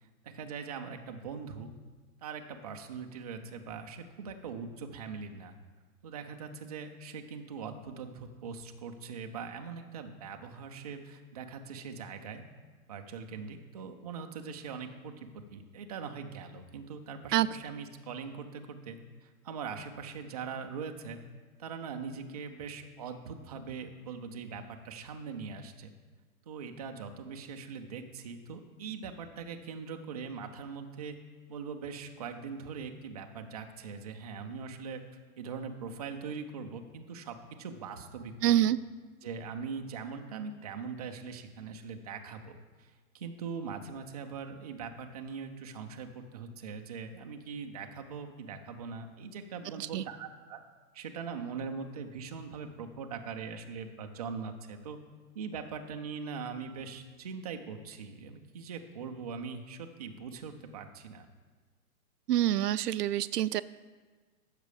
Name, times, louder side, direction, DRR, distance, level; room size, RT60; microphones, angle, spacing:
voice 1, 0.0-1.7 2.2-5.5 6.0-12.5 12.9-21.2 21.6-25.9 26.5-31.2 31.5-35.0 35.4-38.6 39.2-50.6 50.9-55.0 55.3-61.3, right 5 dB, 25° right, 5 dB, 0.4 m, -41 dB
voice 2, 38.4-38.8 49.8-50.0 62.3-63.6, right 12 dB, 85° right, 17 dB, 0.5 m, -26 dB
9.9 x 6.6 x 4.9 m, 1.4 s
hypercardioid pair, 150°, 46 cm